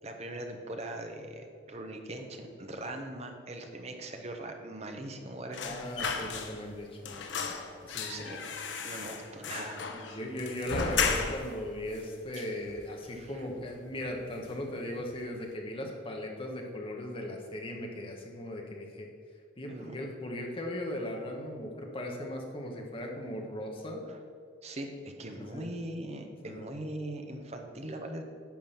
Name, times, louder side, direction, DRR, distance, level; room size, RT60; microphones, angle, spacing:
voice 1, 0.0-5.8 8.1-8.5 8.8-9.8 10.1-10.2 13.2-13.3 19.7-20.0 24.1-24.2 24.6-28.2, right 1 dB, 35° right, 4 dB, 0.8 m, -41 dB
sound 1, 5.5-6.8 7.0-11.6 11.9-12.0 12.3-13.2 13.5-13.7 14.0-14.7 15.0-15.2, left 5 dB, 75° left, 0.8 m, -35 dB
voice 2, 5.6-7.3 7.9-8.3 9.9-19.1 19.6-24.0 25.4-25.7 26.4-26.7, left 1 dB, 25° left, 1 dB, 1.2 m, -38 dB
10.5 x 4.0 x 7.1 m, 2.2 s
head